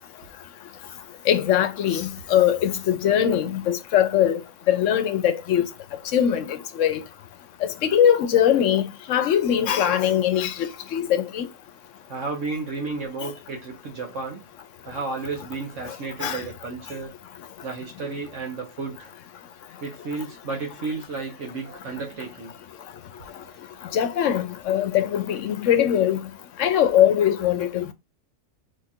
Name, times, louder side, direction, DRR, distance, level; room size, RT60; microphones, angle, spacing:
voice 1, 1.3-4.4 4.7-5.7 6.1-7.0 7.6-11.5 13.2-13.3 16.2-16.4 23.9-26.2 26.6-27.9, left 10 dB, 80° left, 1.0 m, -21 dB
voice 2, 12.1-14.4 14.9-17.1 17.6-19.1 19.8-22.9 23.3-23.9, right 4 dB, 75° right, 1.4 m, -33 dB
4.4 x 2.4 x 4.3 m
omnidirectional pair, 1.3 m